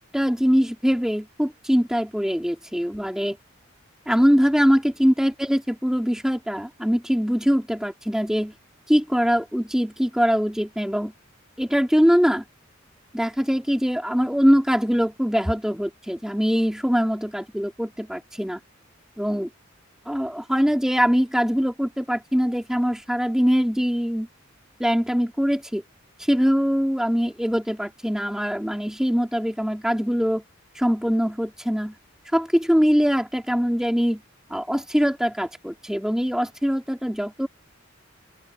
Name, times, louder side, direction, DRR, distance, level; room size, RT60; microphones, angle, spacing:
voice 1, 0.0-3.4 4.1-8.5 8.9-11.1 11.6-12.4 13.1-18.6 19.2-19.5 20.1-24.3 24.8-25.8 26.2-30.4 30.7-31.9 32.3-34.2 34.5-37.5, equal, 5° right, 2.7 m, -22 dB
open air
head